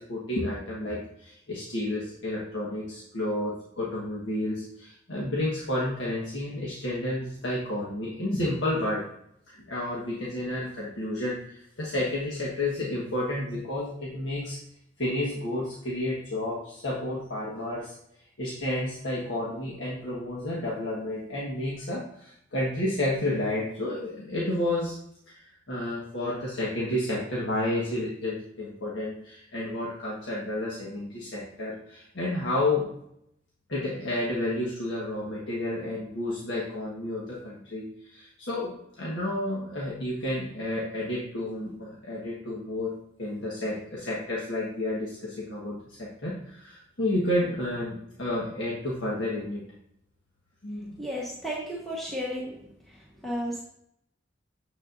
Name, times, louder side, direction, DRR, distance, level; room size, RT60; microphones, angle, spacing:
voice 1, 0.0-9.0 9.5-14.6 15.0-17.9 18.4-24.9 25.3-32.9 33.7-42.9 43.2-49.6 50.6-51.0, left 1 dB, 80° left, -6 dB, 1.4 m, -31 dB
voice 2, 51.0-52.5 53.2-53.6, equal, ahead, -6 dB, 1.1 m, -33 dB
7.3 x 7.0 x 2.6 m, 0.73 s
head